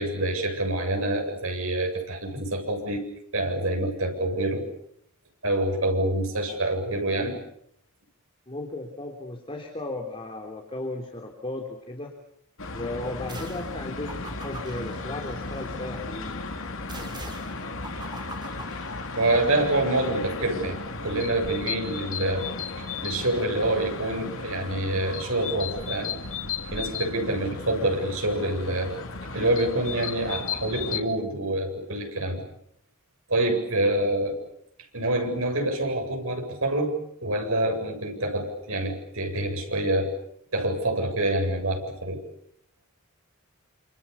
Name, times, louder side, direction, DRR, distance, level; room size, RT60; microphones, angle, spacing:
voice 1, 0.0-3.0 3.3-4.6 5.4-7.3 19.2-22.5 22.8-26.1 26.7-28.9 29.3-32.5 33.3-34.4 34.9-40.1 40.5-42.2, right 1 dB, 70° right, 3 dB, 7.9 m, -26 dB
voice 2, 8.5-12.1 12.7-16.6, left 2 dB, 25° left, 2 dB, 3.5 m, -35 dB
sound 1, 12.6-31.0, left 4 dB, 65° left, 2.7 m, -35 dB
sound 2, 13.3-13.8 14.1-15.8 16.9-19.5, right 2 dB, 20° right, 4.2 m, -44 dB
28.5 x 28.0 x 7.1 m, 0.72 s
head